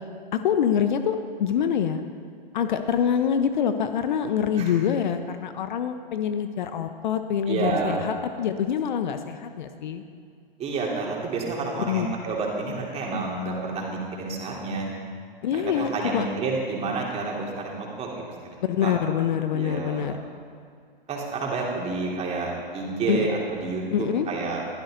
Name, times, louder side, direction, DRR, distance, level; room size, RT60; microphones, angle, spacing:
voice 1, 0.3-2.0 2.5-10.0 11.9-12.1 15.4-16.2 18.6-20.1 23.1-23.3 23.9-24.3, left 8 dB, 50° left, 9 dB, 1.1 m, -25 dB
voice 2, 7.5-8.0 10.6-14.9 15.5-18.3 18.8-18.9 19.5-20.2 21.1-24.6, right 3 dB, 20° right, -2 dB, 3.8 m, -29 dB
22.5 x 15.5 x 4.0 m, 2.2 s
figure-of-eight pair, 110°, 29 cm